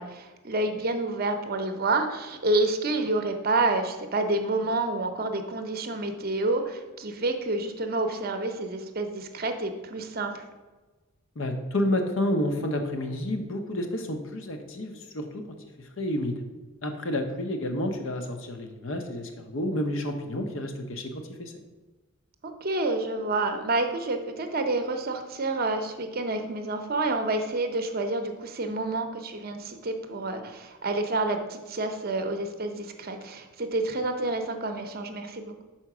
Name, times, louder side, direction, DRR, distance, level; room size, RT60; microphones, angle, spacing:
voice 1, 0.0-10.4 22.4-35.6, right 2 dB, 45° right, 6 dB, 0.7 m, -29 dB
voice 2, 11.4-15.4 15.8-16.4 16.8-21.5, left 1 dB, 60° left, 6 dB, 0.8 m, -30 dB
5.6 x 4.3 x 6.0 m, 1.2 s
head